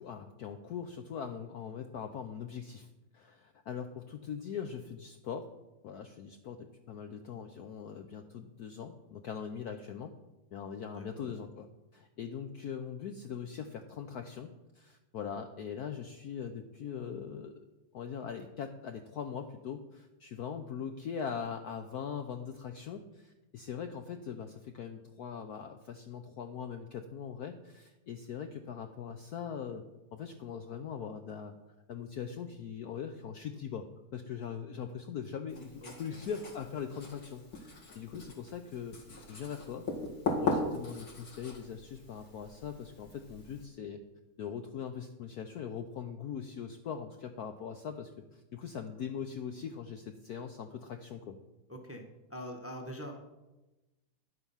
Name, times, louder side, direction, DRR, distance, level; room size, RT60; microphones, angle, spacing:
voice 1, 0.0-2.9 3.1-5.5 5.8-10.1 10.5-11.7 11.9-17.6 17.9-29.8 30.1-31.5 31.9-33.9 34.1-39.0 39.3-39.9 40.4-44.0 44.4-51.4, left 7 dB, 80° left, 7 dB, 0.8 m, -41 dB
voice 2, 10.9-11.3 35.8-36.2 51.7-52.0 52.3-53.1, equal, 15° right, 3 dB, 0.4 m, -44 dB
Writing, 35.5-43.7, left 3 dB, 45° left, 2.3 m, -39 dB
10.5 x 8.1 x 5.6 m, 1.1 s
omnidirectional pair, 2.4 m